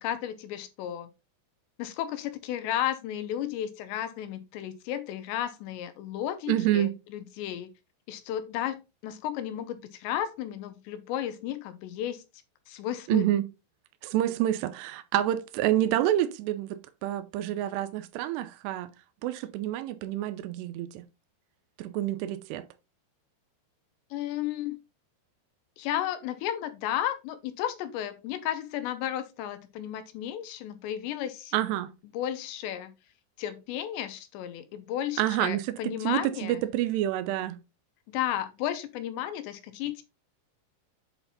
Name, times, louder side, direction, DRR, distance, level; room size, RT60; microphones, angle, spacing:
voice 1, 0.0-1.1 1.8-7.7 8.1-12.2 12.7-13.2 24.1-24.8 25.8-31.5 32.1-32.9 33.4-36.6 38.1-40.0, left 11 dB, 80° left, 2.8 m, -33 dB
voice 2, 6.5-6.9 13.1-13.4 14.0-18.9 19.2-21.0 21.8-22.7 31.5-31.9 35.2-37.6, right 13 dB, 85° right, 2.5 m, -28 dB
8.1 x 4.4 x 4.0 m
omnidirectional pair, 5.4 m